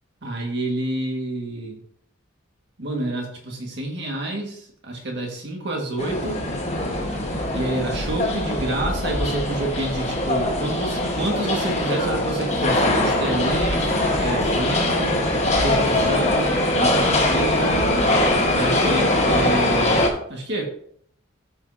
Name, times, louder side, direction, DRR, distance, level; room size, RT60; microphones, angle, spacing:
voice 1, 0.2-1.8 2.8-6.4 7.5-15.1 15.6-17.9 18.5-20.7, right 2 dB, 55° right, 0 dB, 1.8 m, -28 dB
sound 1, 6.0-20.1, left 1 dB, 30° left, 1.4 m, -22 dB
13.0 x 5.5 x 2.8 m, 0.65 s
head